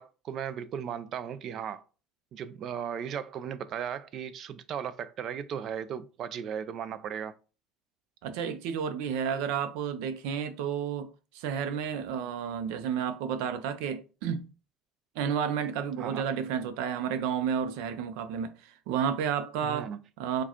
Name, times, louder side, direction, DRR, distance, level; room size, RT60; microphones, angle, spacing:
voice 1, 0.0-1.8 2.3-7.3 16.0-16.2 19.6-20.0, right 8 dB, 45° right, 0.4 m, -36 dB
voice 2, 8.2-14.5 15.1-19.9 20.2-20.4, right 7 dB, 85° right, 0.6 m, -31 dB
4.7 x 2.3 x 4.3 m
cardioid pair, 150°, 0 cm